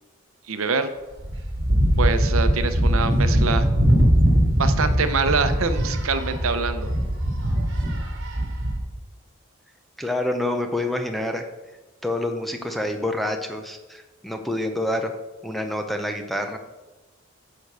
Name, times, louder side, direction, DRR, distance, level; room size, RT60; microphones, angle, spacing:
voice 1, 0.5-0.9 2.0-3.7 4.6-6.9, right 4 dB, 75° right, 9 dB, 0.8 m, -25 dB
sound 1, 1.2-8.8, equal, 55° right, 2.0 m, -21 dB
voice 2, 10.0-11.5 12.0-15.1 15.4-16.6, left 1 dB, ahead, 4 dB, 0.6 m, -27 dB
9.7 x 4.6 x 6.7 m, 1.1 s
head